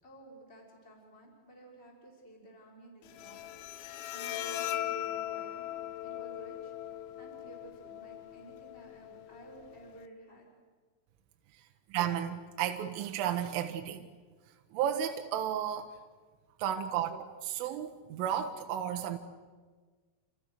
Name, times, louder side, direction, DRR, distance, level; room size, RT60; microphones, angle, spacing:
voice 1, 0.0-3.4 3.7-5.7 6.0-6.7 7.2-10.5, right 1 dB, 10° left, -2 dB, 5.9 m, -54 dB
Bowed string instrument, 3.0-10.0, left 12 dB, 80° left, 2.1 m, -40 dB
voice 2, 11.9-14.1 14.7-16.0 16.6-19.2, right 10 dB, 80° right, 5 dB, 3.6 m, -33 dB
28.5 x 28.5 x 6.6 m, 1.5 s
omnidirectional pair, 5.8 m